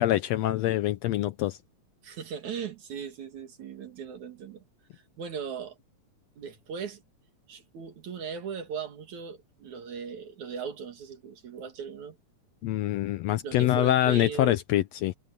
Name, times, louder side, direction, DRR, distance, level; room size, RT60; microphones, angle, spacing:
voice 1, 0.0-1.6 12.6-15.1, left 14 dB, 75° left, 1.7 m, -25 dB
voice 2, 2.0-4.6 4.9-5.8 6.4-7.0 7.5-12.2 13.4-14.6, right 7 dB, 80° right, 3.6 m, -38 dB
omnidirectional pair, 3.3 m